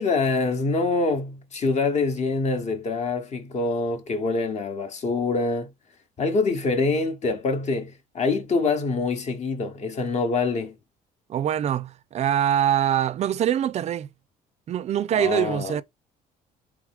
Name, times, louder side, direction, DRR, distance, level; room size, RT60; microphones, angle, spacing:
voice 1, 0.0-5.7 6.2-10.8 15.1-15.8, left 3 dB, 40° left, 0.9 m, -25 dB
voice 2, 11.3-14.1 14.7-15.8, right 10 dB, 40° right, 0.4 m, -24 dB
3.5 x 3.1 x 3.4 m
cardioid pair, 110°, 17 cm